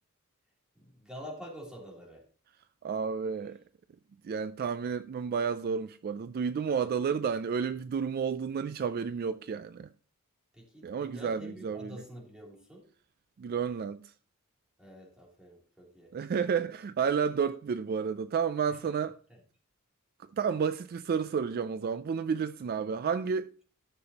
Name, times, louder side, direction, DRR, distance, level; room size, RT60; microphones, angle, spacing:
voice 1, 0.7-2.2 10.5-12.8 14.8-16.1 18.7-18.8 19.3-19.4, equal, 5° right, 3.1 m, -47 dB
voice 2, 2.8-3.6 4.2-9.9 10.8-12.0 13.4-14.0 16.1-19.2 20.4-23.5, right 6 dB, 45° right, 0.3 m, -31 dB
13.0 x 6.9 x 2.9 m
head